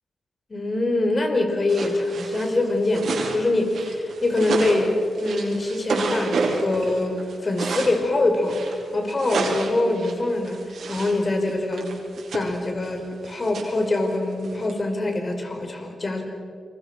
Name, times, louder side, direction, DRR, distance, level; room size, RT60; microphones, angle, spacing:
voice 1, 0.5-8.6 8.9-10.6 10.9-11.9 12.3-16.2, left 2 dB, 40° left, 4 dB, 5.6 m, -24 dB
sound 1, 1.7-8.0 8.4-11.2 11.5-14.7, right 4 dB, 75° right, 4.9 m, -30 dB
27.5 x 24.0 x 6.3 m, 2.4 s
cardioid pair, 65°, 0 cm